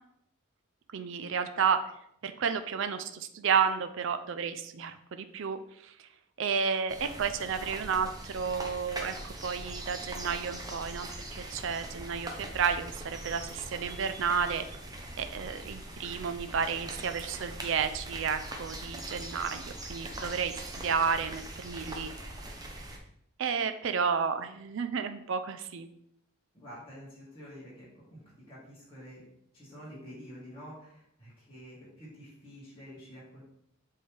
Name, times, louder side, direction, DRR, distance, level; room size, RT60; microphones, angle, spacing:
voice 1, 0.9-1.8 2.2-5.9 6.4-14.6 15.2-22.3 23.4-25.9, right 6 dB, 60° right, 10 dB, 0.4 m, -31 dB
sound 1, 6.9-23.0, right 1 dB, 20° right, 0.7 m, -42 dB
voice 2, 26.5-29.2 29.5-33.4, equal, 25° left, -10 dB, 2.6 m, -48 dB
7.7 x 3.8 x 3.3 m, 0.73 s
head